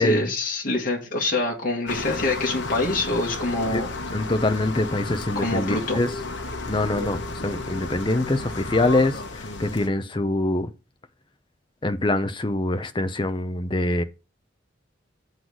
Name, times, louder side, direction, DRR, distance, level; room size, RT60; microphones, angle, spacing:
voice 1, 0.0-3.9 5.3-6.0, left 2 dB, 45° left, 1.5 m, -25 dB
sound 1, 1.9-9.9, left 3 dB, 65° left, 1.1 m, -33 dB
voice 2, 4.1-6.1 6.7-10.7 11.8-14.0, left 2 dB, 25° left, 0.6 m, -24 dB
7.7 x 4.0 x 6.2 m
head